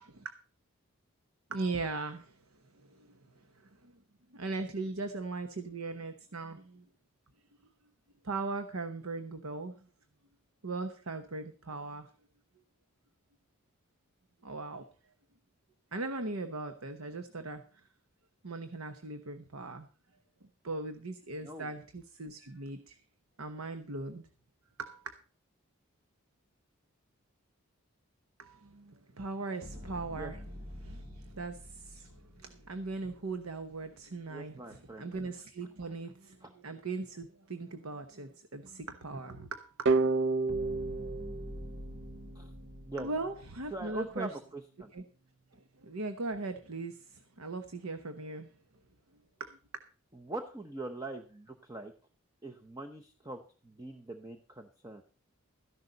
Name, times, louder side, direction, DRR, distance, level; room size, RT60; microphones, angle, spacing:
voice 1, 1.5-2.4 2.7-3.9 4.3-6.8 8.2-9.9 10.6-12.1 14.4-14.9 15.9-17.8 18.4-19.9 20.6-23.0 23.4-24.3 24.8-25.1 28.4-30.4 30.8-39.9 43.0-44.4 44.9-45.0 45.5-48.5 49.4-49.6, right 3 dB, 85° right, 9 dB, 1.0 m, -39 dB
voice 2, 21.4-21.7 30.2-30.3 34.3-35.1 36.4-36.5 42.3-42.5 42.9-43.1 43.7-44.9 50.1-51.9 52.4-55.0, right 2 dB, 15° right, 4 dB, 0.8 m, -42 dB
sound 1, 29.6-33.9 40.5-44.2, equal, 30° right, 2.4 m, -47 dB
sound 2, 39.9-42.7, right 3 dB, 55° right, 0.5 m, -30 dB
13.5 x 11.0 x 4.0 m, 0.39 s
head